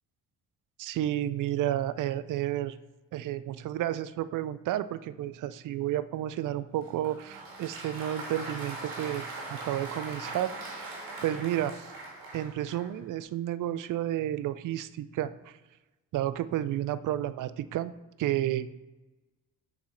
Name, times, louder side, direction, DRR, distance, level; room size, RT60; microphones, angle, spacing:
voice 1, 0.8-2.8 3.1-10.9 11.2-11.9 12.3-15.5 16.1-17.9 18.2-18.7, right 12 dB, 60° right, 16 dB, 0.5 m, -31 dB
Applause, 6.8-13.0, right 2 dB, 75° right, 1.8 m, -41 dB
6.0 x 4.2 x 5.1 m, 1.1 s
supercardioid pair, 65°, 36 cm